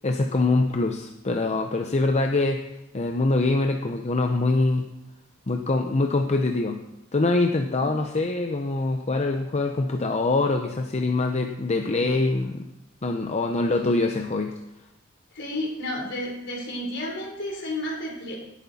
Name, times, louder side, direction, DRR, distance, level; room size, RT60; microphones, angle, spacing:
voice 1, 0.0-2.6 2.9-4.9 5.5-6.8 7.1-12.6 13.0-14.5, left 2 dB, 35° left, 5 dB, 0.7 m, -24 dB
voice 2, 15.3-18.4, left 1 dB, 60° left, 0 dB, 3.7 m, -32 dB
17.5 x 8.4 x 4.2 m, 0.89 s
head